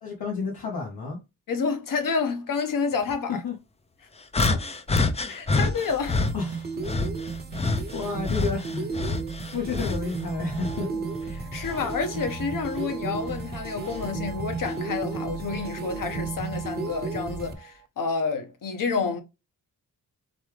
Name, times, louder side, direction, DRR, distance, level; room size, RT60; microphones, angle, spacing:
voice 1, 0.0-1.2 3.3-3.5 4.5-4.6 6.3-6.8 7.9-8.9 9.5-11.0, left 4 dB, 85° left, 1.5 m, -31 dB
voice 2, 1.5-3.4 5.3-6.2 11.3-19.2, left 5 dB, 65° left, 1.2 m, -29 dB
sound 1, 4.3-6.3 6.8-10.1 10.5-12.0 12.7-12.9 13.8-14.0, left 3 dB, 20° left, 0.5 m, -27 dB
sound 2, 5.5-17.5, right 4 dB, 25° right, 0.9 m, -34 dB
sound 3, 10.3-17.9, right 10 dB, 50° right, 0.6 m, -45 dB
4.1 x 3.6 x 3.3 m
wide cardioid pair, 140°, 36 cm